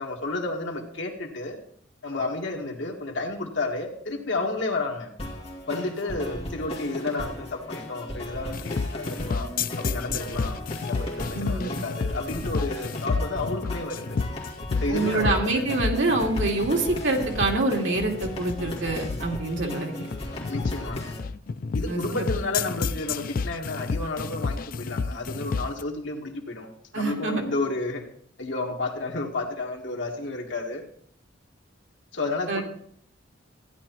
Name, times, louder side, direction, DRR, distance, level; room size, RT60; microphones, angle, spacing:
voice 1, 0.0-1.6 2.0-5.1 5.7-9.5 9.8-14.0 14.8-15.6 20.5-21.2 21.7-26.7 26.9-28.0 28.4-30.8 32.1-32.6, left 2 dB, 70° left, 1 dB, 1.7 m, -31 dB
sound 1, 5.2-21.2, left 1 dB, 30° left, 2.2 m, -37 dB
sound 2, 8.5-25.8, left 4 dB, 50° left, 0.4 m, -30 dB
voice 2, 11.3-11.8 14.9-20.1 21.9-22.3 26.9-27.5 32.5-32.6, right 2 dB, 75° right, 1 dB, 2.2 m, -26 dB
15.5 x 10.5 x 3.0 m, 0.62 s
head